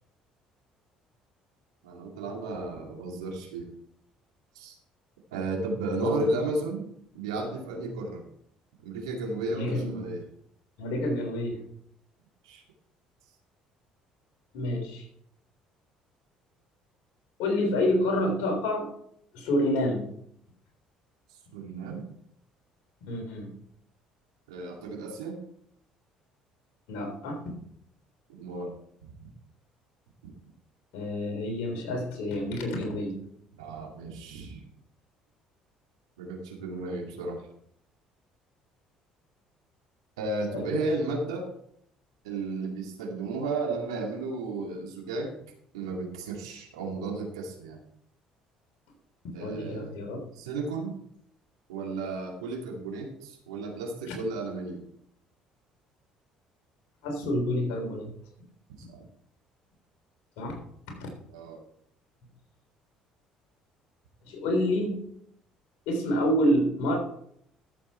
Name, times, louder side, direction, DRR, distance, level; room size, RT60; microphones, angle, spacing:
voice 1, 1.8-3.7 4.5-4.8 5.3-6.9 7.1-8.2 8.8-10.3 12.4-12.6 21.5-22.1 24.5-25.4 28.3-28.7 29.0-29.1 30.2-30.3 33.6-34.6 36.2-37.5 40.2-41.5 42.2-45.3 45.7-47.8 49.3-49.9 50.3-51.0 51.7-54.8 58.9-59.0 61.3-61.6, right 2 dB, 85° right, 1 dB, 2.3 m, -33 dB
voice 2, 9.5-10.0 10.8-11.6 14.5-15.0 17.4-18.9 19.3-20.0 23.1-23.5 26.9-27.4 30.9-33.2 40.5-40.7 49.4-50.2 57.0-58.1 60.4-60.6 61.0-61.1 64.3-65.0 65.9-67.0, left 1 dB, 75° left, 2 dB, 3.7 m, -28 dB
13.5 x 7.3 x 4.3 m, 0.70 s
hypercardioid pair, 60°, 3 cm